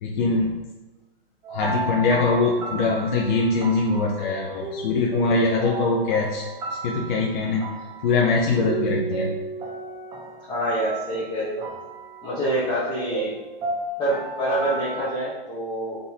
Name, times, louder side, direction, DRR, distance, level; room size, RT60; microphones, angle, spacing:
voice 1, 0.0-0.5 1.5-6.5 6.8-7.7 8.0-9.3, left 3 dB, 55° left, -2 dB, 0.7 m, -22 dB
sound 1, 1.4-15.2, right 3 dB, 10° right, 0.5 m, -33 dB
voice 2, 10.5-11.6 12.2-13.3 14.0-16.0, right 1 dB, 15° left, -10 dB, 0.9 m, -26 dB
4.0 x 3.8 x 2.8 m, 1.1 s
hypercardioid pair, 140°, 29 cm